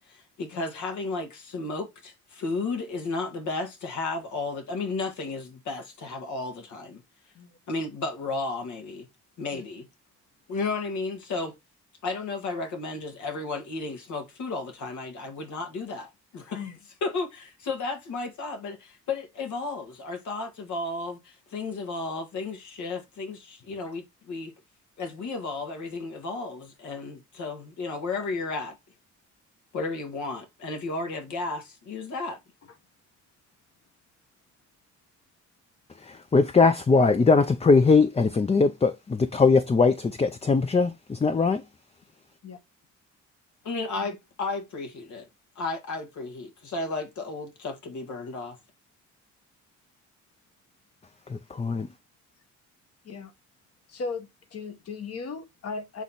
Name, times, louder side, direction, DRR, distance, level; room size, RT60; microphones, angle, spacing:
voice 1, 0.0-7.0 7.7-9.1 9.4-9.9 10.5-11.6 12.0-16.7 17.0-24.5 25.0-28.8 29.7-32.4 43.6-45.3 45.6-48.6, left 3 dB, 75° left, 1.8 m, -33 dB
voice 2, 36.1-40.9 41.2-41.6 51.3-51.9, left 4 dB, 20° left, 0.6 m, -21 dB
voice 3, 53.9-56.0, left 4 dB, 55° left, 1.5 m, -37 dB
8.1 x 3.1 x 4.1 m
cardioid pair, 90°, 30 cm